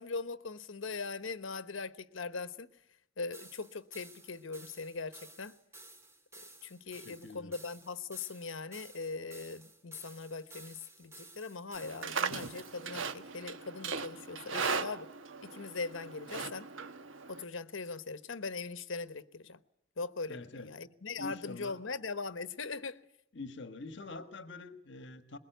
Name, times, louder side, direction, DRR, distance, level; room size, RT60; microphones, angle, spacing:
voice 1, 0.0-2.7 3.2-5.5 6.6-15.1 15.4-16.7 17.3-19.6 20.0-23.0, left 4 dB, 80° left, 1.0 m, -40 dB
sound 1, 3.3-12.8, right 2 dB, 15° right, 2.7 m, -54 dB
voice 2, 6.9-7.5 20.3-20.7 21.2-21.8 23.3-25.4, left 3 dB, 60° left, 1.5 m, -45 dB
Livestock farm animals working animals, 11.8-17.4, right 5 dB, 80° right, 1.2 m, -38 dB
22.5 x 21.0 x 9.2 m
head